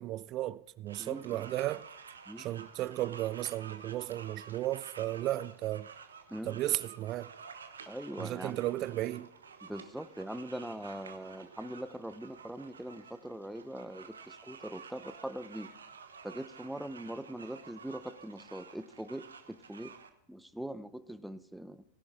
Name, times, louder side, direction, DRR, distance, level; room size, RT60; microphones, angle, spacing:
voice 1, 0.0-1.8 2.4-5.9 6.4-7.3 8.2-9.3, right 15 dB, 35° right, 0.3 m, -34 dB
sound 1, 0.9-20.1, right 6 dB, 70° right, 1.1 m, -51 dB
voice 2, 1.0-1.4 2.3-2.5 6.3-6.6 7.9-8.6 9.6-15.7 16.2-19.9 20.3-21.8, right 1 dB, ahead, 0.7 m, -42 dB
16.5 x 11.0 x 3.5 m
figure-of-eight pair, 90°, 0 cm